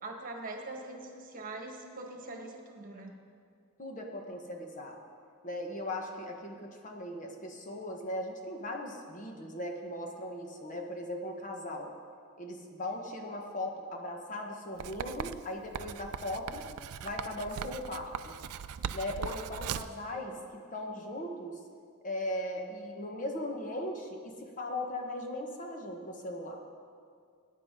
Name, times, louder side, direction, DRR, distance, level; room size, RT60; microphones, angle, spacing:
voice 1, 0.0-3.1, right 2 dB, 40° right, 2 dB, 1.3 m, -42 dB
voice 2, 3.8-5.0 5.4-11.9 12.4-16.7 17.0-18.4 18.9-21.6 22.0-26.6, left 1 dB, 35° left, 2 dB, 1.2 m, -38 dB
Writing, 14.8-20.0, right 8 dB, 85° right, 0.4 m, -39 dB
19.0 x 9.7 x 3.7 m, 2.2 s
head